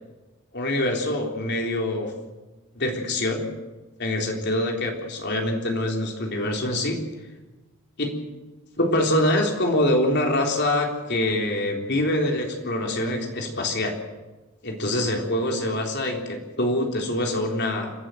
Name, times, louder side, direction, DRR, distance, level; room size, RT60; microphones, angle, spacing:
voice 1, 0.5-2.1 2.8-3.5 4.0-7.0 8.0-8.1 8.8-14.0 14.6-17.9, left 1 dB, 50° left, 1 dB, 3.7 m, -25 dB
29.5 x 11.5 x 7.8 m, 1.2 s
head